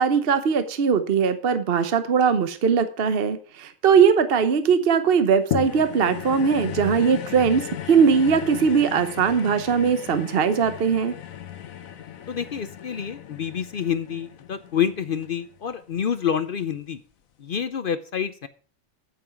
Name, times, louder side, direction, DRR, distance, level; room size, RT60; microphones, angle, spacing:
voice 1, 0.0-11.1, right 6 dB, 50° right, 10 dB, 1.0 m, -20 dB
sound 1, 5.5-16.0 16.6-16.7, left 10 dB, 90° left, 1.3 m, -36 dB
voice 2, 12.3-17.0 17.4-18.5, left 8 dB, 55° left, 12 dB, 0.6 m, -28 dB
8.8 x 8.6 x 5.8 m, 0.42 s
omnidirectional pair, 1.4 m